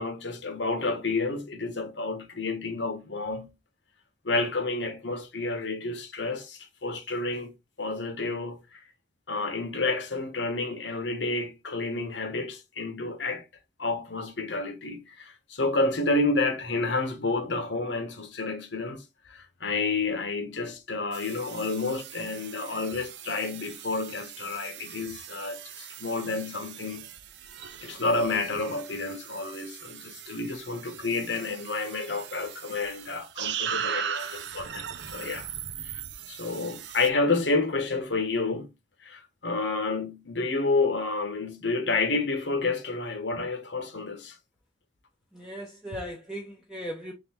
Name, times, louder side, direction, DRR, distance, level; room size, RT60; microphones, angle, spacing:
voice 1, 0.0-3.5 4.2-7.5 7.8-8.8 9.3-13.4 13.8-19.0 19.3-27.0 27.8-34.9 35.1-35.5 35.8-38.7 39.0-44.4, left 3 dB, 90° left, 1.3 m, -30 dB
sound 1, 21.1-37.1, right 8 dB, 70° right, 0.5 m, -39 dB
voice 2, 45.3-47.1, equal, 5° right, 0.7 m, -38 dB
4.0 x 3.5 x 3.5 m
head